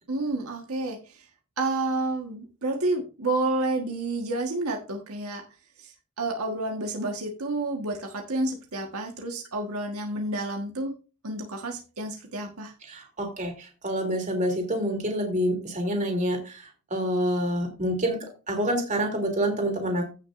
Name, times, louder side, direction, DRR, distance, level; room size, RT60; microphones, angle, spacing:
voice 1, 0.1-1.2 1.6-5.4 5.8-11.0 11.2-12.7, right 2 dB, 80° right, 1 dB, 1.5 m, -30 dB
voice 2, 12.9-16.6 16.9-18.2 18.5-20.1, equal, 35° right, 2 dB, 3.1 m, -27 dB
16.0 x 6.2 x 2.6 m, 0.33 s
head